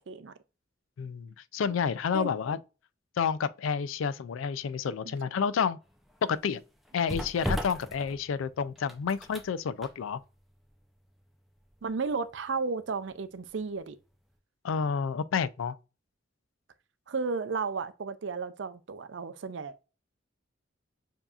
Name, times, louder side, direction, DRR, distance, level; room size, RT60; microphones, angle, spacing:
voice 1, 1.0-2.6 3.2-5.8 6.2-6.6 6.9-10.2 14.6-15.8, left 6 dB, 85° left, 0.4 m, -30 dB
sound 1, 5.8-13.8 14.1-14.3, equal, ahead, 0.5 m, -40 dB
voice 2, 11.8-14.0 17.1-19.8, right 4 dB, 65° right, 0.5 m, -33 dB
6.9 x 2.8 x 2.4 m
head